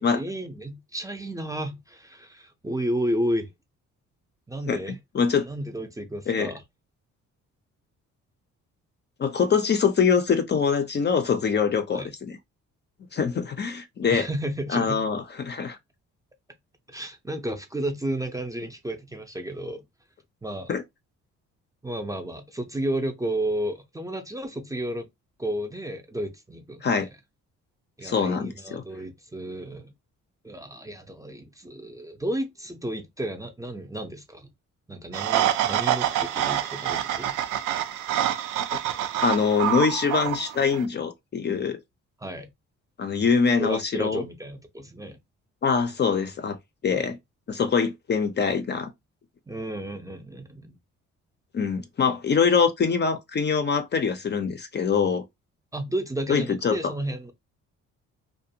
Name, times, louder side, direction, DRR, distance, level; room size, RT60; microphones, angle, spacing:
voice 1, 0.0-3.5 4.5-5.0 5.4-6.6 11.9-12.1 14.0-15.0 16.9-19.8 20.4-20.7 21.8-25.1 25.4-26.9 28.0-29.9 30.4-34.5 34.9-37.3 42.2-42.5 43.6-45.2 46.9-47.1 49.5-50.8 55.7-57.3, right 1 dB, 10° right, 0.5 m, -32 dB
voice 2, 5.1-5.5 6.3-6.5 9.2-12.4 13.1-14.3 14.7-15.8 20.7-20.8 26.8-27.1 28.0-28.8 39.2-41.8 43.0-44.2 45.6-46.6 46.8-47.2 47.5-48.9 51.5-55.2 56.3-56.8, left 6 dB, 35° left, 0.5 m, -24 dB
sound 1, 35.1-40.8, right 11 dB, 90° right, 0.5 m, -26 dB
2.5 x 2.2 x 2.7 m
cardioid pair, 90°, 30 cm